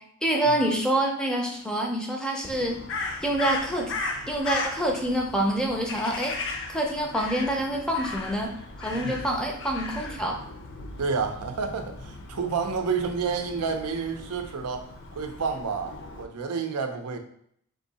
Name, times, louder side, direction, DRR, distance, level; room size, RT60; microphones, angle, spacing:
voice 1, 0.2-2.8 3.2-3.9 4.3-10.4, right 1 dB, 5° left, 0 dB, 0.5 m, -27 dB
Crow, 2.5-16.2, left 3 dB, 55° left, 0.6 m, -37 dB
voice 2, 8.9-9.2 11.0-17.2, right 5 dB, 80° right, 5 dB, 0.6 m, -30 dB
3.8 x 2.7 x 4.0 m, 0.67 s
head